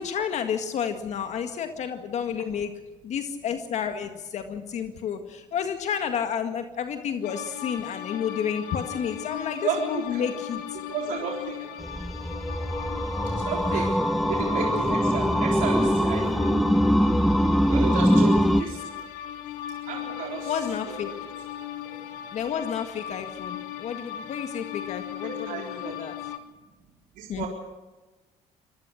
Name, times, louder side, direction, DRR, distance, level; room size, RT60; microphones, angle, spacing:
voice 1, 0.0-2.7 3.0-9.6 9.9-10.6 13.7-13.8 18.5-18.7 20.5-21.1 22.3-26.1 27.3-27.5, left 8 dB, 55° left, 7 dB, 1.9 m, -31 dB
sound 1, 7.2-26.4, left 11 dB, 85° left, 2.1 m, -37 dB
voice 2, 9.6-10.3 10.9-11.8 13.3-13.9 14.3-16.5 17.7-18.9 19.9-21.3 21.9-22.0 25.2-26.0 27.2-27.5, right 6 dB, 70° right, 0 dB, 3.8 m, -33 dB
sound 2, 11.8-18.6, equal, ahead, 0.8 m, -23 dB
25.5 x 18.5 x 6.5 m, 1.2 s
cardioid pair, 110°, 14 cm